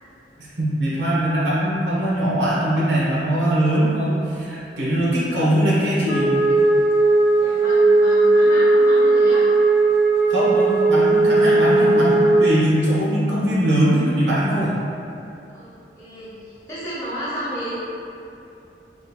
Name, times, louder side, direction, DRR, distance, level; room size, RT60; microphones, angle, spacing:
voice 1, 0.4-6.3 10.3-14.8, right 1 dB, 80° right, -7 dB, 0.8 m, -21 dB
Wind instrument woodwind instrument, 6.1-12.5, right 2 dB, 80° left, 0.5 m, -16 dB
voice 2, 7.4-9.4 15.5-17.8, equal, 15° left, -13 dB, 0.8 m, -32 dB
3.6 x 2.4 x 2.8 m, 2.7 s
head